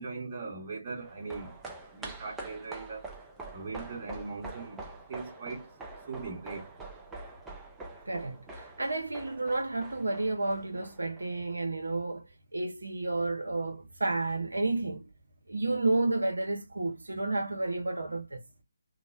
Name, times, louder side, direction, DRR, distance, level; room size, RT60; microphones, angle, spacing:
voice 1, 0.0-1.5 1.9-3.1 3.5-4.8 5.1-5.7 6.1-6.7, right 4 dB, 30° right, 1.2 m, -39 dB
sound 1, 1.0-11.5 11.8-11.9, right 2 dB, 10° right, 0.5 m, -45 dB
voice 2, 8.1-15.0 15.5-18.4, right 2 dB, 70° right, 0.7 m, -31 dB
2.9 x 2.0 x 2.4 m
figure-of-eight pair, 145°, 0 cm